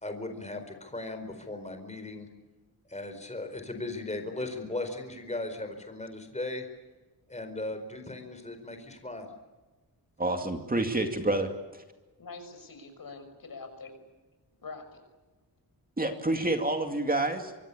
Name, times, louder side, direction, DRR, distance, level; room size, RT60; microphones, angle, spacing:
voice 1, 0.0-2.3 2.9-6.6 7.3-9.3, left 2 dB, 15° left, 6 dB, 4.6 m, -37 dB
voice 2, 10.2-11.8 16.0-17.5, right 2 dB, 25° right, 5 dB, 2.4 m, -28 dB
voice 3, 12.2-14.0 14.6-15.0, left 4 dB, 65° left, 7 dB, 6.2 m, -44 dB
25.0 x 23.5 x 8.5 m, 1.2 s
wide cardioid pair, 150°, 38 cm